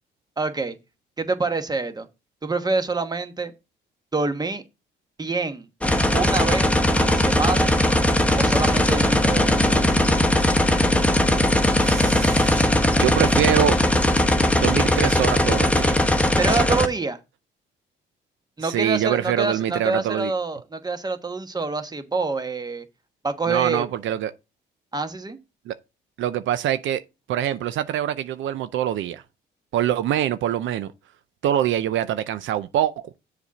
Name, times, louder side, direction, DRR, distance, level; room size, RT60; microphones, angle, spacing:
voice 1, 0.4-0.8 1.2-2.1 2.4-3.5 4.1-4.6 5.2-5.7 6.1-7.7 8.4-10.0 16.4-17.2 18.6-22.9 23.2-23.8 24.9-25.4, right 3 dB, 20° right, 1.1 m, -26 dB
sound 1, 5.8-16.9, left 1 dB, 5° left, 1.0 m, -19 dB
voice 2, 11.8-12.7 13.0-13.7 14.6-16.0 18.6-20.3 23.5-24.3 25.7-25.8 26.2-27.0 27.3-29.2 29.7-30.9 31.4-33.0, right 11 dB, 75° right, 0.5 m, -24 dB
7.0 x 4.2 x 6.2 m
cardioid pair, 90°, 20 cm